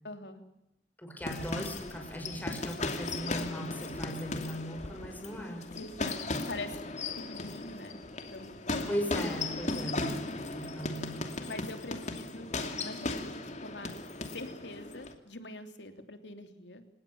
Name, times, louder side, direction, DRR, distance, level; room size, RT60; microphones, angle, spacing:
voice 1, 0.0-0.4 5.7-6.8 7.2-8.0 8.3-8.5 10.1-10.3 11.5-12.5 12.8-13.9 14.3-16.8, left 2 dB, 80° left, 7 dB, 3.3 m, -44 dB
voice 2, 1.0-5.6 8.9-10.1 10.5-11.2, equal, 10° left, 2 dB, 6.3 m, -38 dB
sound 1, 1.2-15.1, left 2 dB, 40° left, 2.7 m, -37 dB
29.5 x 18.0 x 7.3 m, 0.84 s
head